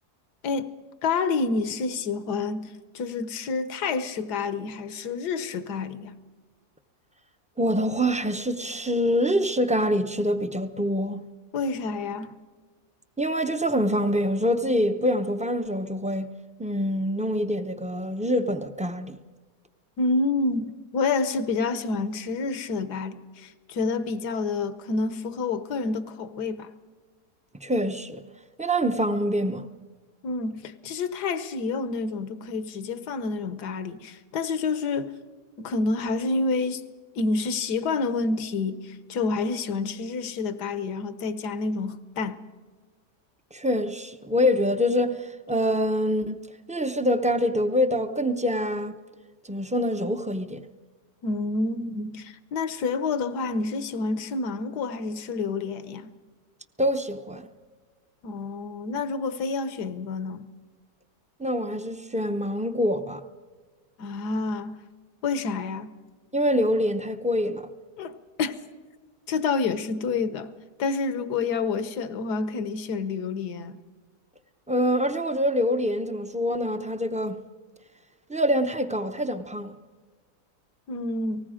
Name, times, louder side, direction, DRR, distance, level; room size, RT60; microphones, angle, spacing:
voice 1, 1.0-6.1 11.5-12.3 20.0-26.7 30.2-35.1 35.6-36.9 37.1-42.4 51.2-56.1 58.2-60.5 64.0-64.8 65.2-65.9 68.0-68.6 69.3-70.5 70.8-73.8 80.9-81.4, left 4 dB, 80° left, 1.6 m, -28 dB
voice 2, 7.6-11.2 13.2-16.3 16.6-19.2 27.6-28.2 28.6-29.6 43.5-48.9 49.5-50.6 56.8-57.5 61.4-63.2 66.3-67.7 74.7-77.4 78.3-79.7, equal, 10° right, 0.3 m, -25 dB
30.0 x 19.5 x 5.0 m
omnidirectional pair, 1.7 m